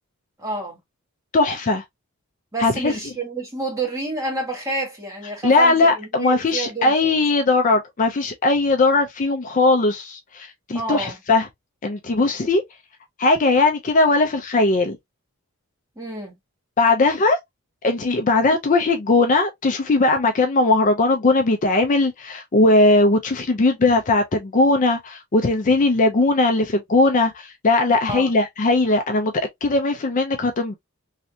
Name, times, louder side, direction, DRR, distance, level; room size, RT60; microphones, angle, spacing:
voice 1, 0.4-0.8 2.5-7.1 10.7-11.2 16.0-16.3 28.1-28.3, right 2 dB, 15° right, 1.4 m, -29 dB
voice 2, 1.3-1.8 2.6-2.9 5.4-11.5 11.8-12.6 13.2-15.0 16.8-17.4 17.8-29.3 29.6-30.8, left 2 dB, 35° left, 0.5 m, -19 dB
3.2 x 2.7 x 2.7 m
head